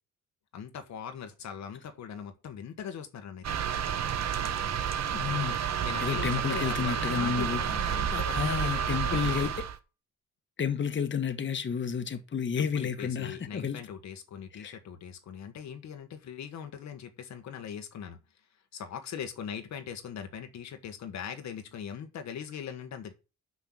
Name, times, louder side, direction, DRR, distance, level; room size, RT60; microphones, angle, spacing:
voice 1, 0.5-3.6 5.8-9.4 12.5-18.2 18.7-23.1, left 8 dB, 65° left, 1.4 m, -40 dB
sound 1, 3.4-9.8, right 8 dB, 60° right, 1.2 m, -30 dB
voice 2, 5.1-7.6 8.1-9.5 10.6-13.8 14.5-14.8, left 7 dB, 40° left, 1.4 m, -31 dB
6.2 x 5.7 x 7.2 m
cardioid pair, 90°, 30 cm